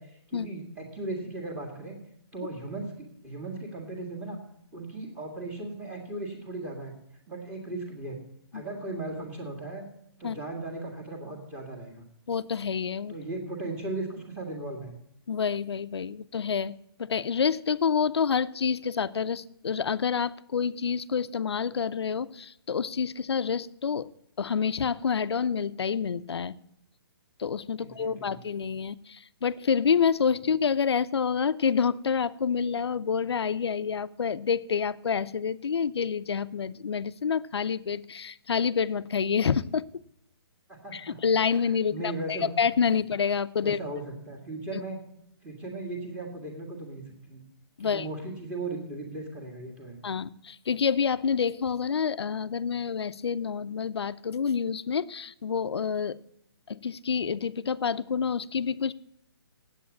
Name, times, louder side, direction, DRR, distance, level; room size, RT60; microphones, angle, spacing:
voice 1, 0.0-2.0 2.3-4.4 4.7-6.9 7.3-8.2 8.5-9.9 10.2-12.0 13.1-15.0 27.8-28.4 40.8-41.2 41.9-42.5 43.6-45.0 45.4-47.4 47.8-50.0, right 2 dB, 10° right, 1 dB, 1.8 m, -37 dB
voice 2, 12.3-13.1 15.3-26.5 27.4-39.9 40.9-43.8 47.8-48.1 50.0-56.2 56.7-58.9, left 6 dB, 90° left, 13 dB, 0.6 m, -28 dB
8.7 x 8.2 x 8.4 m, 0.75 s
hypercardioid pair, 170°, 13 cm